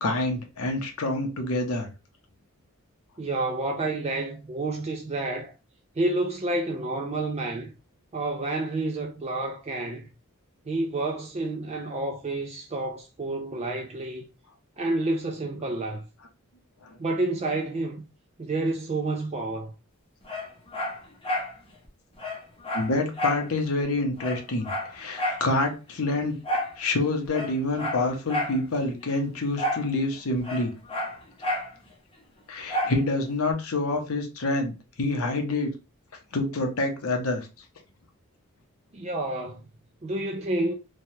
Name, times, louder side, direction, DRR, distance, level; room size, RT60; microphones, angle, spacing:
voice 1, 0.0-1.9 16.9-17.0 22.7-26.4 26.8-30.7 32.5-35.7 36.3-37.5, left 2 dB, 85° left, 0.7 m, -27 dB
voice 2, 3.2-5.5 6.0-7.7 8.1-10.1 10.7-14.3 14.8-16.0 17.0-18.0 18.4-19.7 38.9-39.6 40.0-40.7, right 2 dB, 30° right, 0.3 m, -29 dB
Dog, 20.3-21.5 21.9-22.0 22.2-23.5 23.8-23.9 24.2-25.5 26.4-26.8 27.3-28.6 29.6-29.9 30.2-31.7 32.7-33.0 33.5-33.6, left 1 dB, 25° left, 0.7 m, -30 dB
3.2 x 2.3 x 2.7 m
head